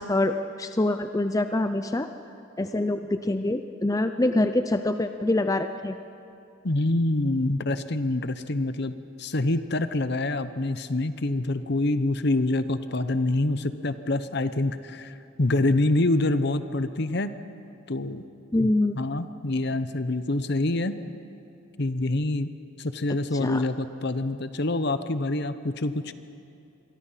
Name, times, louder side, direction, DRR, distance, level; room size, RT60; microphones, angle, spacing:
voice 1, 0.0-2.1 2.6-6.0 18.5-19.0 23.3-23.6, left 2 dB, 15° left, 8 dB, 0.5 m, -25 dB
voice 2, 6.6-8.9 9.2-17.3 17.9-18.2 18.6-20.9 21.8-22.5 22.8-26.1, left 2 dB, 55° left, 12 dB, 0.9 m, -26 dB
27.0 x 23.0 x 5.7 m, 2.6 s
head